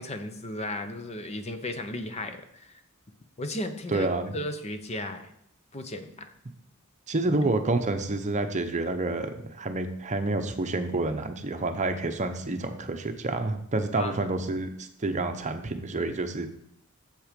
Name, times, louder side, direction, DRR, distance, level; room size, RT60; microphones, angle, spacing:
voice 1, 0.0-2.8 3.4-5.3 5.7-6.3 14.0-14.3, left 1 dB, 30° left, 8 dB, 0.8 m, -35 dB
voice 2, 3.9-4.3 7.1-16.5, right 2 dB, 35° right, 7 dB, 0.8 m, -28 dB
7.7 x 7.4 x 5.1 m, 0.74 s
head